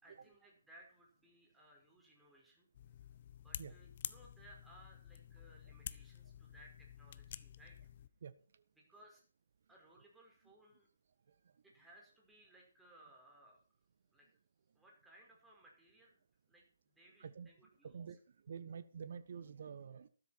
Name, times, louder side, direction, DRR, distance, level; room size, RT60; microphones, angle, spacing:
voice 1, 0.0-2.7 3.4-7.8 8.9-9.3 9.7-10.9 11.6-13.6 14.1-14.3 14.8-18.0, right 1 dB, 5° right, -3 dB, 5.3 m, -63 dB
sound 1, 2.7-8.1, left 10 dB, 40° left, 0.7 m, -50 dB
voice 2, 17.2-17.5 17.8-18.2 18.5-20.1, right 6 dB, 45° right, 14 dB, 1.1 m, -48 dB
14.0 x 12.5 x 4.5 m, 0.40 s
figure-of-eight pair, 140°, 0 cm